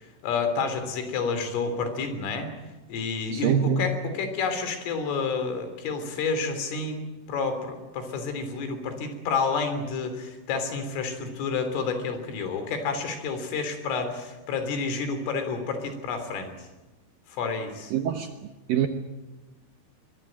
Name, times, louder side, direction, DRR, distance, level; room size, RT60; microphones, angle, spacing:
voice 1, 0.2-2.5 2.9-7.0 7.3-16.5 17.3-17.9, left 4 dB, 90° left, 8 dB, 5.8 m, -29 dB
voice 2, 3.3-3.9 17.9-18.3 18.7-18.9, right 8 dB, 70° right, 6 dB, 2.2 m, -24 dB
23.0 x 22.0 x 8.9 m, 1.1 s
omnidirectional pair, 5.6 m